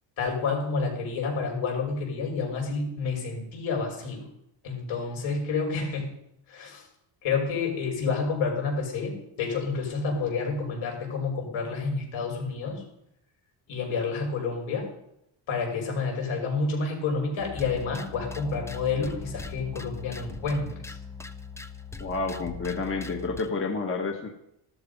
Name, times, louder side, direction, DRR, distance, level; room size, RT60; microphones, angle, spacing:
voice 1, 0.2-4.3 4.6-6.1 6.5-6.9 7.2-12.8 13.7-14.9 15.5-21.0, left 4 dB, 75° left, 0 dB, 5.7 m, -29 dB
sound 1, 17.4-23.5, left 4 dB, 5° left, 0.5 m, -40 dB
voice 2, 22.0-24.3, left 4 dB, 25° left, 3 dB, 1.4 m, -30 dB
14.5 x 12.5 x 5.4 m, 0.78 s
cardioid pair, 160°, 48 cm